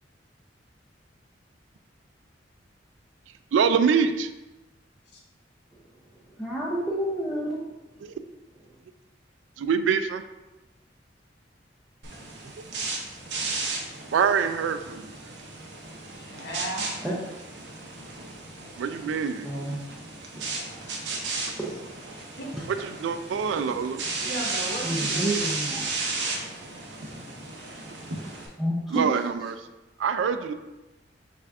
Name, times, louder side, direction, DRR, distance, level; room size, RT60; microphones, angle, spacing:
voice 1, 3.5-4.3 8.0-8.2 9.6-10.2 14.1-15.3 18.8-19.8 23.0-24.0 28.9-29.7 30.0-30.5, right 6 dB, 85° right, 10 dB, 0.3 m, -25 dB
voice 2, 6.3-7.7 17.0-17.5 19.4-19.8 21.2-22.0 23.7-23.8 24.8-26.0 28.6-29.1, right 1 dB, ahead, -6 dB, 0.5 m, -30 dB
sound 1, 12.0-28.5, right 3 dB, 65° right, 0.8 m, -34 dB
voice 3, 16.2-16.9 22.4-22.5 24.1-25.5, right 1 dB, 65° left, -2 dB, 1.0 m, -35 dB
5.9 x 2.4 x 3.5 m, 1.1 s
head